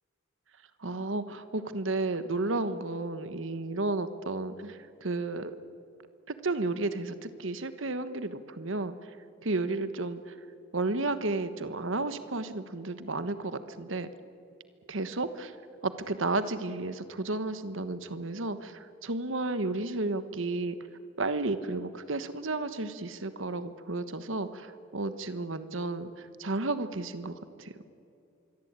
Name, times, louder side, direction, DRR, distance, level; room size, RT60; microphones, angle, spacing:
voice 1, 0.8-5.5 6.3-8.9 9.4-10.3 10.7-14.1 14.9-15.5 15.8-20.7 21.2-27.3 27.6-27.7, right 2 dB, 75° right, 12 dB, 1.3 m, -32 dB
26.0 x 22.5 x 8.9 m, 2.6 s
head